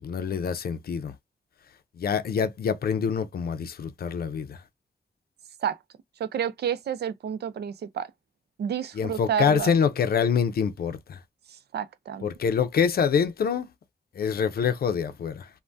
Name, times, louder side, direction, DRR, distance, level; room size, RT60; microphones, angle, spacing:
voice 1, 0.0-1.1 2.0-4.6 8.9-11.2 12.2-13.7 14.1-15.5, left 7 dB, 70° left, 0.5 m, -25 dB
voice 2, 6.2-8.1 8.6-9.7 11.5-12.3, right 8 dB, 85° right, 0.4 m, -30 dB
3.3 x 2.1 x 2.5 m
wide cardioid pair, 140°, 17 cm